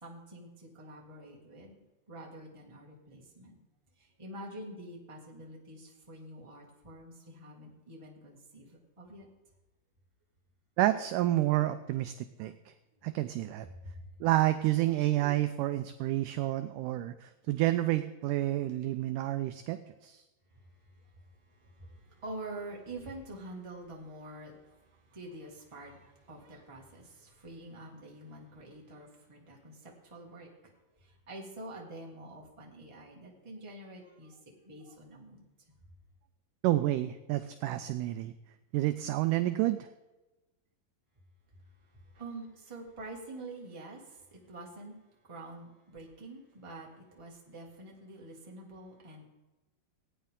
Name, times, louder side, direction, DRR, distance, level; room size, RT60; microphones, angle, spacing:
voice 1, 0.0-1.8 2.1-3.6 4.2-9.3 13.8-13.9 21.6-30.5 31.3-34.4 34.6-35.4 42.1-44.9 45.3-46.9 47.1-49.2, right 2 dB, 15° right, -2 dB, 1.1 m, -46 dB
voice 2, 10.8-12.5 13.0-13.7 14.2-20.2 36.6-38.3 38.7-39.9, right 15 dB, 85° right, 10 dB, 1.8 m, -29 dB
17.0 x 9.3 x 3.7 m, 1.1 s
omnidirectional pair, 4.2 m